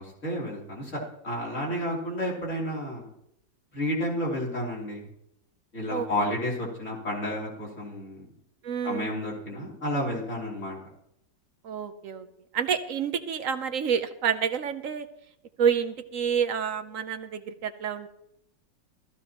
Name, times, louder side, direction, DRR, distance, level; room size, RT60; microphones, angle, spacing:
voice 1, 0.0-3.1 3.7-5.1 5.7-8.3 8.8-10.8, left 1 dB, 40° left, -4 dB, 3.6 m, -31 dB
voice 2, 8.6-9.1 11.6-12.3 12.5-15.1 15.6-18.1, right 7 dB, 60° right, 9 dB, 0.9 m, -28 dB
15.5 x 14.0 x 3.0 m, 0.78 s
omnidirectional pair, 2.0 m